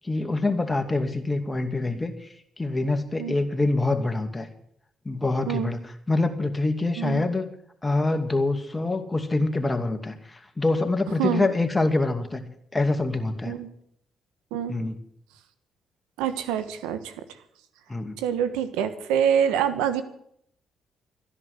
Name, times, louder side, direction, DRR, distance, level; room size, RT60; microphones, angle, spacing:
voice 1, 0.0-2.3 2.6-4.5 5.0-7.5 7.8-12.4 12.7-13.6 14.7-15.0 17.9-18.2, left 2 dB, 20° left, 6 dB, 2.3 m, -25 dB
voice 2, 16.2-17.1 18.2-20.0, right 9 dB, 90° right, 10 dB, 1.2 m, -25 dB
13.5 x 11.0 x 8.1 m, 0.70 s
supercardioid pair, 65°, 0 cm